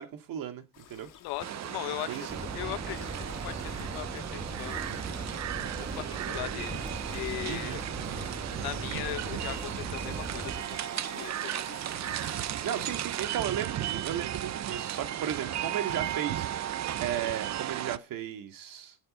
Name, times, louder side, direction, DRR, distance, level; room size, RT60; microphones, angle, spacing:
voice 1, 0.0-1.1 2.1-2.3 7.5-7.8 12.6-19.0, right 10 dB, 60° right, 2.5 m, -35 dB
sound 1, 0.7-13.3, left 10 dB, 55° left, 2.2 m, -52 dB
voice 2, 1.2-2.3 2.5-3.1 3.4-4.8 5.7-7.8 8.6-11.7, left 17 dB, 85° left, 1.2 m, -39 dB
sound 2, 1.4-18.0, right 12 dB, 45° right, 0.7 m, -35 dB
sound 3, 2.3-10.6, right 2 dB, 10° right, 1.8 m, -39 dB
8.9 x 8.2 x 7.9 m
cardioid pair, 115°, 37 cm